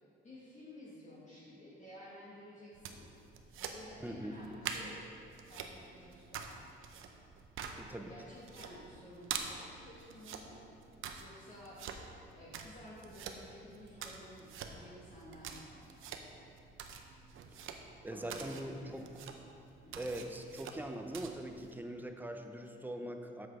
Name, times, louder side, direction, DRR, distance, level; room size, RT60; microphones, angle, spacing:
voice 1, 0.2-3.1 3.6-5.0 5.4-6.7 8.1-10.6 11.2-11.8 12.3-16.5 18.1-19.1 19.8-20.1, left 1 dB, 35° left, -8 dB, 1.8 m, -53 dB
sound 1, 2.7-21.7, right 6 dB, 75° right, 0.7 m, -47 dB
voice 2, 4.0-4.4 7.8-8.1 17.5-17.8 18.0-19.1 20.0-23.5, right 1 dB, 10° right, 5 dB, 0.7 m, -42 dB
7.9 x 6.2 x 4.9 m, 2.6 s
cardioid pair, 90°, 21 cm